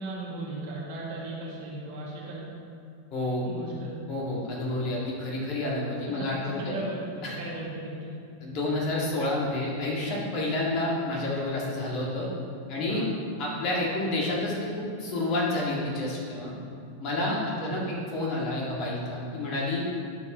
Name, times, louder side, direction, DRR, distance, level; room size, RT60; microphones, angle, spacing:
voice 1, 0.0-2.5 3.4-3.9 6.0-7.0 7.4-8.2 12.8-13.1 17.4-17.8, right 2 dB, 50° right, -5 dB, 1.8 m, -37 dB
voice 2, 3.1-3.5 4.1-6.7 7.2-7.3 8.4-12.3 12.7-13.0 13.4-16.5 17.0-17.8 18.1-19.8, left 2 dB, 40° left, -4 dB, 1.9 m, -29 dB
12.5 x 4.8 x 3.0 m, 2.4 s
figure-of-eight pair, 90°, 0 cm